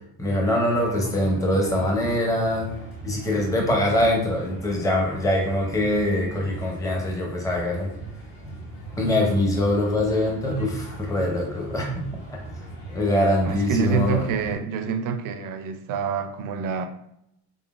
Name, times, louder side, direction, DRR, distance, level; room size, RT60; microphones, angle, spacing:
voice 1, 0.2-2.6 3.0-7.9 9.0-12.1 12.9-14.2, left 1 dB, 10° left, 0.5 m, -23 dB
sound 1, 0.7-14.6, right 2 dB, 90° left, 1.5 m, -40 dB
voice 2, 13.5-16.9, right 6 dB, 50° right, 0.4 m, -26 dB
3.8 x 3.8 x 2.4 m
cardioid pair, 180°, 42 cm